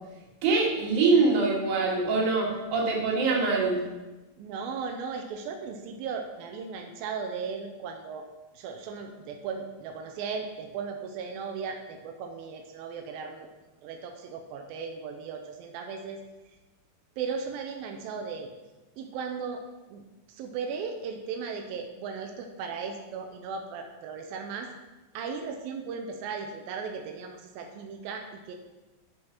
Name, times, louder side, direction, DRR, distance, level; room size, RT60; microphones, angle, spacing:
voice 1, 0.4-3.8, right 3 dB, 60° right, -2 dB, 3.2 m, -24 dB
voice 2, 4.4-8.3 8.5-13.5 13.8-16.2 17.2-18.5 19.0-19.6 19.9-20.0 20.3-24.7 25.1-28.6, right 5 dB, 90° right, 3 dB, 2.5 m, -36 dB
8.9 x 6.4 x 5.8 m, 1.1 s
omnidirectional pair, 4.2 m